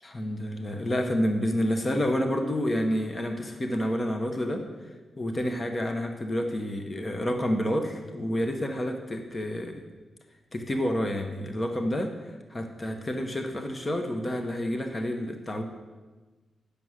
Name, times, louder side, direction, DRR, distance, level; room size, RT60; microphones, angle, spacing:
voice 1, 0.1-4.7 5.2-9.8 10.5-15.6, equal, 25° left, 5 dB, 0.9 m, -29 dB
9.4 x 6.9 x 6.3 m, 1.3 s
wide cardioid pair, 125°, 0 cm